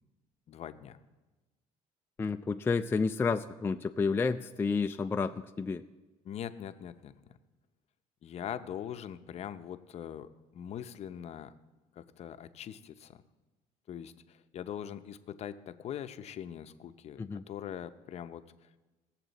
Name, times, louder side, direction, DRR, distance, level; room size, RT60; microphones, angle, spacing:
voice 1, 0.5-1.0 6.2-7.1 8.2-11.5 12.0-13.2 13.9-18.4, left 9 dB, 45° left, 10 dB, 0.7 m, -42 dB
voice 2, 2.2-5.8 17.2-17.4, left 4 dB, 15° left, 7 dB, 0.3 m, -30 dB
19.5 x 7.4 x 4.0 m, 1.2 s
cardioid pair, 105°, 15 cm